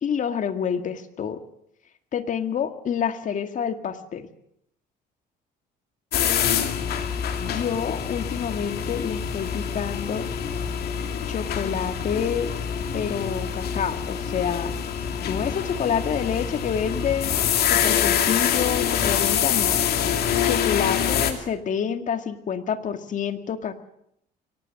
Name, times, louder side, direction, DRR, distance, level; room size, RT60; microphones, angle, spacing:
voice 1, 0.0-1.4 2.1-4.3 7.4-10.3 11.3-12.5 12.9-14.7 15.2-19.8 20.4-23.8, left 7 dB, 50° left, 9 dB, 2.0 m, -28 dB
sound 1, 6.1-21.3, left 8 dB, 70° left, 2.7 m, -25 dB
23.0 x 18.5 x 7.7 m, 0.75 s
cardioid pair, 110°, 17 cm